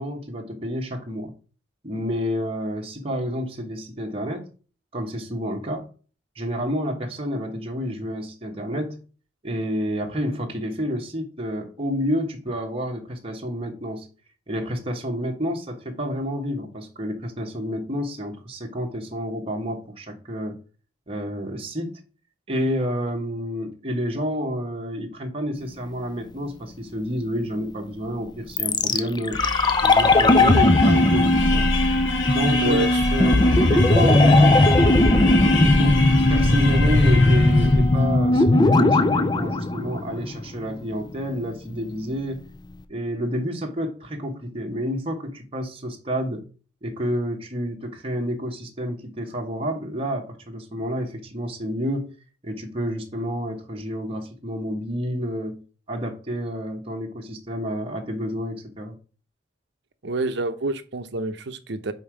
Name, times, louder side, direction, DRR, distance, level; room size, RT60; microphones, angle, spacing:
voice 1, 0.0-1.3 1.8-4.5 4.9-5.9 6.3-9.0 9.4-14.1 14.5-20.6 21.1-22.0 22.5-29.4 29.8-31.7 32.3-35.0 35.4-36.0 36.3-42.4 42.9-46.4 46.8-52.1 52.4-55.6 55.9-59.0, equal, 30° right, 1.2 m, -29 dB
sound 1, 28.6-40.6 40.8-40.9, left 2 dB, 25° left, 0.5 m, -18 dB
sound 2, 29.3-37.9, left 4 dB, 70° left, 1.3 m, -28 dB
voice 2, 32.6-33.1 60.0-61.9, right 2 dB, 60° right, 0.8 m, -27 dB
5.4 x 4.6 x 6.2 m
head